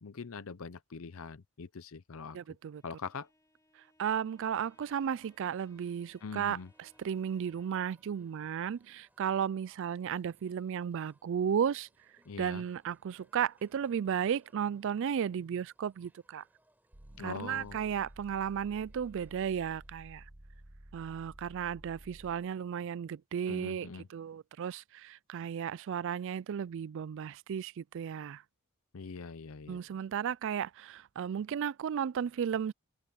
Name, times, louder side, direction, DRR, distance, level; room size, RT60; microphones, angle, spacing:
voice 1, 0.0-2.4 2.8-3.3 6.2-6.7 12.3-12.6 17.2-17.8 23.5-24.1 28.9-29.8, left 5 dB, 65° left, 0.6 m, -43 dB
voice 2, 2.3-2.8 3.8-11.9 12.4-16.4 17.2-20.3 20.9-28.4 29.7-32.7, right 8 dB, 60° right, 0.3 m, -34 dB
Bowed string instrument, 2.6-7.9, left 1 dB, 15° left, 4.2 m, -69 dB
sound 1, 4.5-19.9, right 1 dB, 10° right, 5.3 m, -71 dB
sound 2, 16.9-22.5, right 1 dB, 35° right, 1.3 m, -53 dB
head